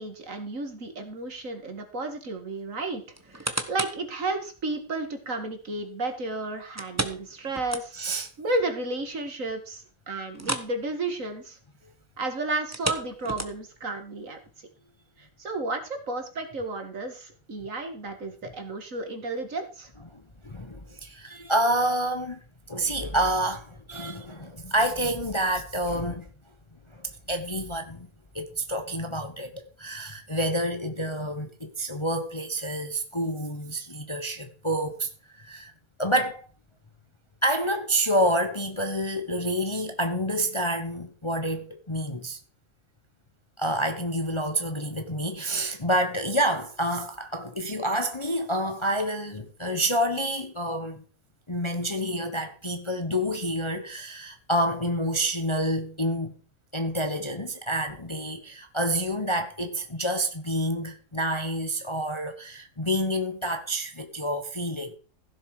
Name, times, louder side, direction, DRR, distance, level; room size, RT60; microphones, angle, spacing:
voice 1, 0.0-3.0 3.3-8.0 8.4-11.6 12.2-14.4 15.2-19.9, right 2 dB, 55° right, 2.3 m, -32 dB
sound 1, 3.1-4.1 4.6-4.7 6.8-8.2 8.6-8.7 9.1-9.2 10.3-10.8 11.0-11.3 12.6-13.8 14.5-14.6, right 1 dB, 10° right, 1.0 m, -33 dB
voice 2, 7.9-8.3 20.1-22.4 22.7-26.3 26.9-28.1 28.3-35.7 36.0-36.5 37.4-42.4 43.6-51.0 51.5-56.3 56.7-64.9, right 1 dB, 20° left, 1.0 m, -28 dB
16.0 x 6.9 x 4.8 m
omnidirectional pair, 1.7 m